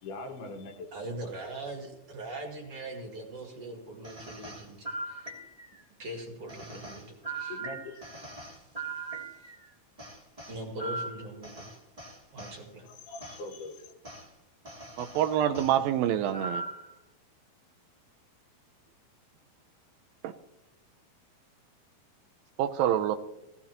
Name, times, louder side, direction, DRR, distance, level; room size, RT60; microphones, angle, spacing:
voice 1, 0.0-0.9 1.2-1.3 7.5-8.0 12.8-13.9, left 2 dB, 85° left, 3 dB, 3.5 m, -42 dB
voice 2, 0.9-5.3 6.0-7.6 8.9-9.5 10.5-11.7 12.3-12.9, right 1 dB, 45° right, 1 dB, 2.6 m, -41 dB
sound 1, 4.0-5.8 6.5-9.6 10.0-12.6 13.2-13.4 14.0-14.2 14.6-15.8 16.3-16.9, right 3 dB, 10° right, 1.8 m, -40 dB
voice 3, 15.0-16.6 20.2-20.3 22.6-23.2, right 10 dB, 80° right, 10 dB, 2.2 m, -26 dB
17.5 x 15.5 x 2.9 m, 0.92 s
omnidirectional pair, 4.4 m